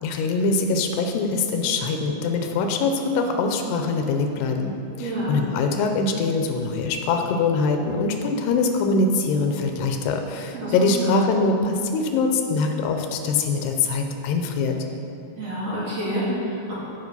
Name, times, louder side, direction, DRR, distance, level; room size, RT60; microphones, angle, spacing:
voice 1, 0.0-4.7 5.0-14.8, left 3 dB, 85° left, 5 dB, 2.8 m, -23 dB
voice 2, 5.0-5.4 10.5-10.7 11.0-11.1 15.4-16.7, right 1 dB, 45° right, -9 dB, 3.2 m, -28 dB
14.5 x 5.3 x 5.5 m, 2.7 s
omnidirectional pair, 4.7 m